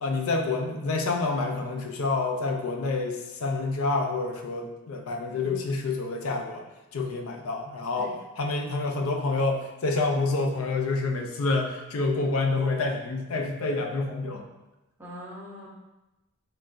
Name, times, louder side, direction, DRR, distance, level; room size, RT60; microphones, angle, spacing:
voice 1, 0.0-6.6 6.9-8.1 8.4-14.4, left 3 dB, 85° left, 3 dB, 0.5 m, -28 dB
voice 2, 15.0-15.7, equal, 10° right, -7 dB, 0.9 m, -42 dB
3.8 x 3.3 x 2.5 m, 1.0 s
head